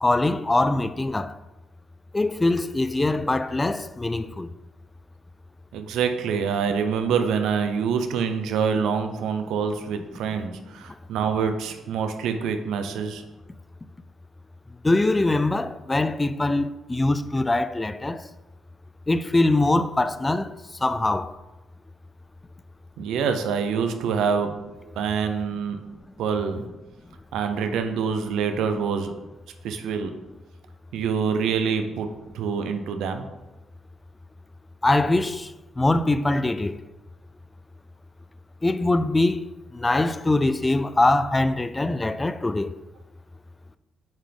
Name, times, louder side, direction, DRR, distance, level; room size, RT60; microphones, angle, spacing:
voice 1, 0.0-1.3 2.1-4.5 14.8-18.2 19.1-20.5 20.8-21.3 34.8-35.5 35.8-36.8 38.6-39.5 39.7-42.7, left 2 dB, 20° left, 0.3 m, -23 dB
voice 2, 5.7-13.2 23.0-24.5 25.0-25.8 26.2-26.6 27.3-29.1 29.6-30.1 30.9-32.1 32.3-33.3, right 6 dB, 85° right, 0.7 m, -26 dB
9.0 x 3.9 x 3.5 m
cardioid pair, 90°, 0 cm